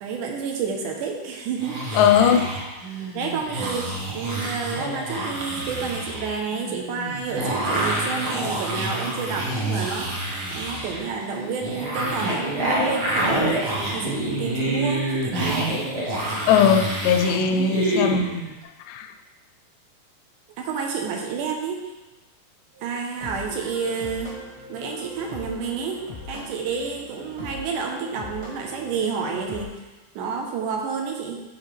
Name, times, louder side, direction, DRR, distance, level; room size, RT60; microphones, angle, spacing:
voice 1, 0.0-2.4 3.1-10.3 10.5-15.7 20.6-21.9 22.8-24.4 24.7-26.0 26.3-29.7 30.2-31.4, right 5 dB, 80° right, 1 dB, 2.4 m, -30 dB
sound 1, 1.6-18.5, right 1 dB, 60° right, 1.0 m, -27 dB
voice 2, 2.0-2.5 16.5-18.3 18.9-19.1, left 7 dB, 80° left, 7 dB, 2.0 m, -19 dB
sound 2, 22.7-29.6, left 2 dB, 30° right, 0.5 m, -40 dB
11.5 x 4.2 x 3.3 m, 1.1 s
omnidirectional pair, 3.7 m